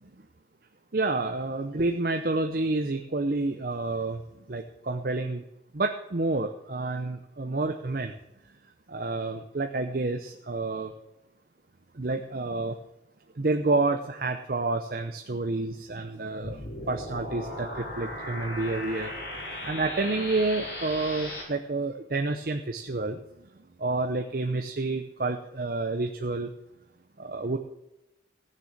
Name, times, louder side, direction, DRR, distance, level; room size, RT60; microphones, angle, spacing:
voice 1, 0.9-4.2 4.5-5.4 5.7-8.1 8.9-10.9 12.0-12.8 13.4-16.6 16.9-19.1 19.6-23.2 23.8-26.5 27.2-27.6, right 3 dB, 50° right, 5 dB, 0.7 m, -29 dB
sound 1, 16.4-21.4, left 1 dB, 70° left, 5.3 m, -37 dB
15.0 x 6.8 x 7.4 m, 0.90 s
head